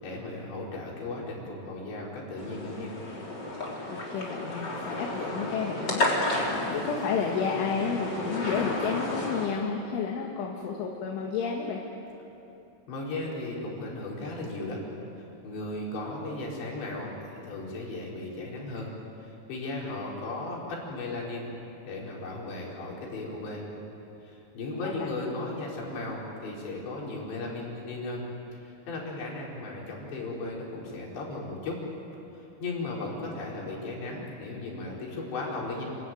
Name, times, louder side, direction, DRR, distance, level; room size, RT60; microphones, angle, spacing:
voice 1, 0.0-3.0 12.9-14.8 15.2-18.9 19.2-21.5 21.9-23.7 24.2-28.2 28.5-31.8 32.4-35.8, left 2 dB, 65° left, -3 dB, 6.9 m, -36 dB
sound 1, 2.4-9.5, left 1 dB, 25° left, 3.5 m, -32 dB
voice 2, 3.9-6.1 6.7-11.8 24.8-24.9, left 6 dB, 80° left, 0 dB, 4.1 m, -31 dB
29.0 x 21.5 x 9.3 m, 3.0 s
omnidirectional pair, 5.4 m